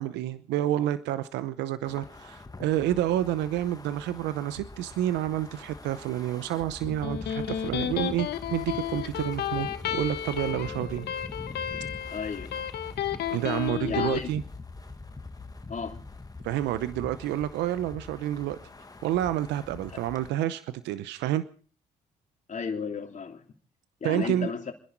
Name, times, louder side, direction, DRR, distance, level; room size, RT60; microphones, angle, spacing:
voice 1, 0.0-11.1 13.3-14.4 16.4-18.6 19.0-21.4 24.0-24.5, right 12 dB, 80° right, 14 dB, 0.8 m, -29 dB
Wind, 1.8-20.3, left 3 dB, 20° left, 1.7 m, -43 dB
Electric guitar, 6.8-14.2, left 10 dB, 70° left, 1.1 m, -32 dB
voice 2, 12.1-12.5 13.8-14.3 15.7-16.0 22.5-23.5 24.0-24.7, left 6 dB, 45° left, 4 dB, 3.0 m, -33 dB
27.5 x 10.5 x 4.5 m, 0.41 s
hypercardioid pair, 55°, 18 cm